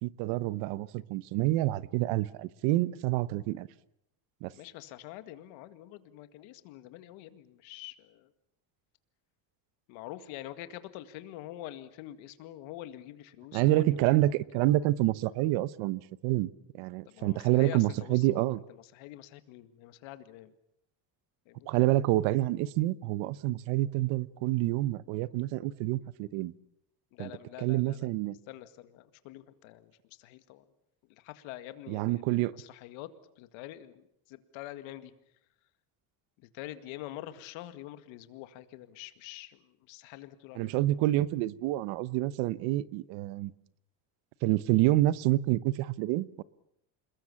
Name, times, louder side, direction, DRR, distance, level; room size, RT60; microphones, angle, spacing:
voice 1, 0.0-3.7 4.4-4.5 13.5-16.5 16.7-18.6 21.7-26.5 27.2-27.3 27.6-28.4 31.9-32.5 40.5-43.5 44.4-46.4, right 16 dB, 85° right, 1.1 m, -28 dB
voice 2, 4.5-8.3 9.9-14.0 14.5-14.7 17.1-20.5 21.5-21.7 27.1-28.1 28.5-30.7 31.1-33.1 33.4-35.2 36.5-40.8, left 14 dB, 90° left, 2.1 m, -46 dB
28.0 x 21.5 x 7.2 m
cardioid pair, 160°, 46 cm